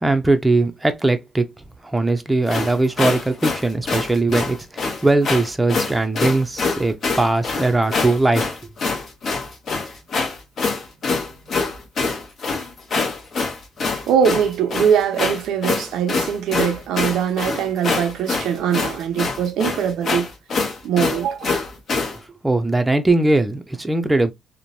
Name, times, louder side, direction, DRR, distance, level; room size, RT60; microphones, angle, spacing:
voice 1, 0.0-1.5 1.9-8.4 22.4-24.3, right 2 dB, 10° right, 0.5 m, -20 dB
sound 1, 2.5-22.2, left 4 dB, 55° left, 0.9 m, -25 dB
voice 2, 14.1-20.3 20.6-21.6, right 8 dB, 85° right, 0.5 m, -22 dB
3.0 x 2.1 x 2.5 m
cardioid pair, 90°, 0 cm